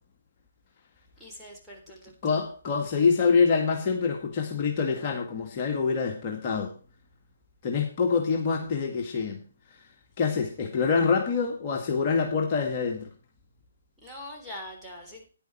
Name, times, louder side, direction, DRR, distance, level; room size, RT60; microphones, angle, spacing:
voice 1, 1.2-2.1 14.0-15.3, left 1 dB, ahead, -5 dB, 3.8 m, -42 dB
voice 2, 2.2-6.7 7.6-9.4 10.2-13.1, left 5 dB, 35° left, 1 dB, 1.9 m, -25 dB
10.5 x 10.0 x 4.5 m, 0.38 s
figure-of-eight pair, 135°, 0 cm